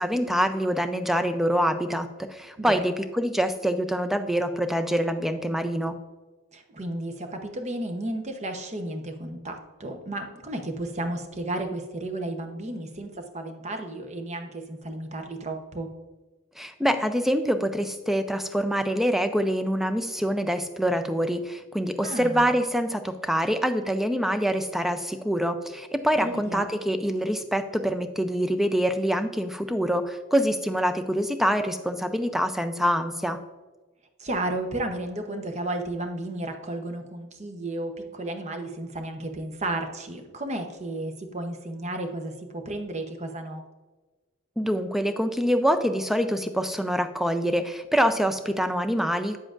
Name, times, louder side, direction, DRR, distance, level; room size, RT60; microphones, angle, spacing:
voice 1, 0.0-5.9 16.6-33.4 44.6-49.4, equal, ahead, 9 dB, 0.4 m, -25 dB
voice 2, 6.5-15.9 22.0-22.5 26.2-26.6 34.2-43.6, right 1 dB, 35° right, 5 dB, 0.8 m, -33 dB
8.7 x 7.5 x 2.5 m, 1.2 s
head